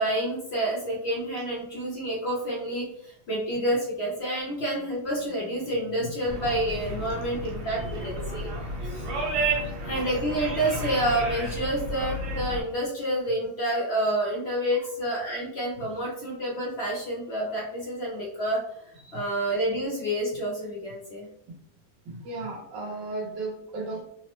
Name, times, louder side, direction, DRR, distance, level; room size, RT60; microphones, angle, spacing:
voice 1, 0.0-8.5 8.8-9.1 9.8-18.6 19.1-21.3, right 1 dB, 60° left, -4 dB, 0.6 m, -28 dB
sound 1, 6.3-12.6, right 2 dB, 90° right, 1.4 m, -32 dB
voice 2, 22.0-24.0, right 2 dB, 70° right, -2 dB, 1.5 m, -35 dB
3.4 x 2.0 x 2.9 m, 0.73 s
omnidirectional pair, 2.0 m